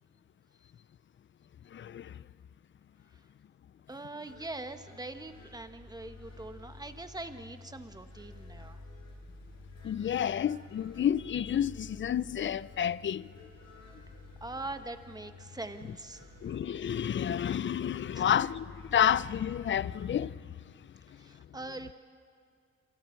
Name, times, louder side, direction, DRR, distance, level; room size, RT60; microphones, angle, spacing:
voice 1, 1.7-2.2 9.8-13.3 16.4-20.5 20.8-20.9, left 9 dB, 40° left, 0.5 m, -30 dB
voice 2, 3.9-8.8 14.4-16.3 18.1-18.2 21.2-21.9, right 2 dB, 15° right, 1.4 m, -42 dB
sound 1, 4.3-20.2, left 3 dB, 60° left, 7.6 m, -51 dB
27.5 x 27.0 x 4.6 m
cardioid pair, 90°, 30 cm